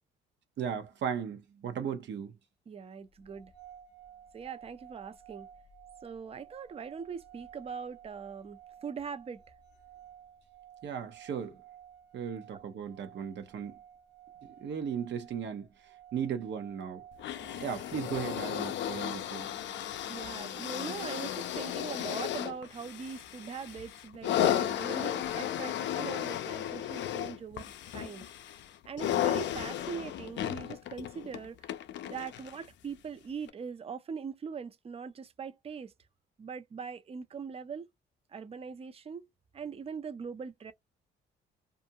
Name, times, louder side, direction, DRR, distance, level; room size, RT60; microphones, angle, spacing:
voice 1, 0.6-2.3 10.8-11.6 12.1-13.8 14.6-15.7 16.1-17.0 17.6-19.6, right 8 dB, 65° right, 0.8 m, -36 dB
voice 2, 2.7-3.5 4.3-5.5 6.0-9.4 20.1-28.2 28.9-31.7 32.1-35.9 36.4-37.9 38.3-39.3 39.5-40.7, right 6 dB, 30° right, 0.5 m, -41 dB
sound 1, 3.3-20.4, right 9 dB, 35° left, 0.8 m, -55 dB
sound 2, 17.2-32.7 33.5-33.6, left 11 dB, 65° left, 0.4 m, -34 dB
2.5 x 2.2 x 2.7 m
cardioid pair, 90°, 20 cm